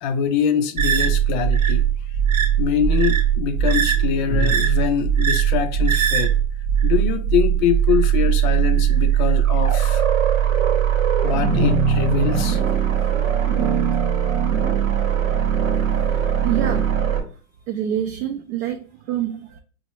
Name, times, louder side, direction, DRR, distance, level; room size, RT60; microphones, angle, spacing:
voice 1, 0.0-1.9 2.6-6.4 6.8-10.0 11.2-12.6, left 8 dB, 40° left, 0.4 m, -23 dB
sound 1, 0.8-17.2, right 8 dB, 85° right, 1.0 m, -20 dB
voice 2, 16.4-16.9 17.7-19.6, right 10 dB, 55° right, 0.5 m, -26 dB
4.3 x 2.1 x 2.9 m
hypercardioid pair, 130°, 40 cm